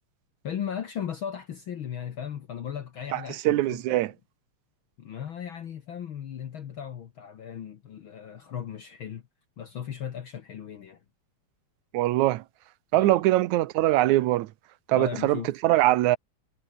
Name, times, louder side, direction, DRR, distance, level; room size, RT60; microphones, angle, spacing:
voice 1, 0.4-4.1 5.0-9.2 9.6-11.0 12.9-13.2 14.9-15.5, left 8 dB, 55° left, 1.7 m, -37 dB
voice 2, 3.1-4.1 11.9-12.4 12.9-14.5 14.9-16.2, right 16 dB, 80° right, 2.2 m, -23 dB
omnidirectional pair, 3.3 m